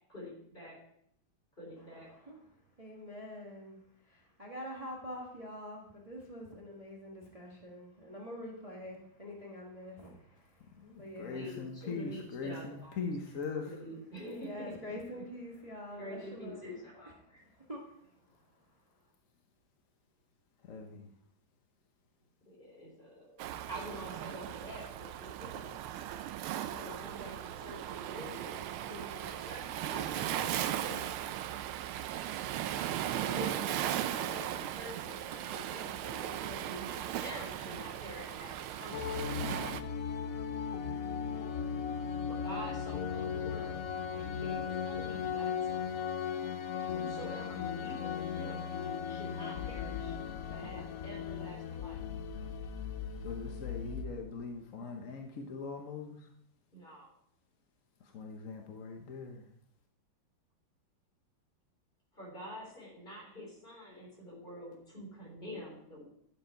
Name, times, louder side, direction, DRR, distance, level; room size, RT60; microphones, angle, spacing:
voice 1, 0.1-0.8 1.6-2.1 11.3-14.7 15.9-17.4 22.5-23.4 23.7-25.8 26.7-31.4 33.2-39.2 42.3-43.8 44.1-45.9 46.7-48.7 49.1-50.2 50.5-52.0 56.7-57.1 62.1-66.0, equal, 25° left, -2 dB, 3.9 m, -47 dB
voice 2, 2.8-3.8 4.1-10.5 11.0-11.5 14.2-16.8 17.2-17.3 17.6-17.8, equal, 20° right, -2 dB, 1.4 m, -45 dB
voice 3, 10.8-13.7 20.7-21.1 53.2-56.2 58.1-59.4, left 4 dB, 50° left, 3 dB, 1.1 m, -41 dB
Waves surf, 23.4-39.8, right 11 dB, 85° right, 1.5 m, -37 dB
sound 1, 38.9-54.0, left 7 dB, 80° left, 0.7 m, -37 dB
11.5 x 7.6 x 4.5 m, 0.70 s
omnidirectional pair, 2.3 m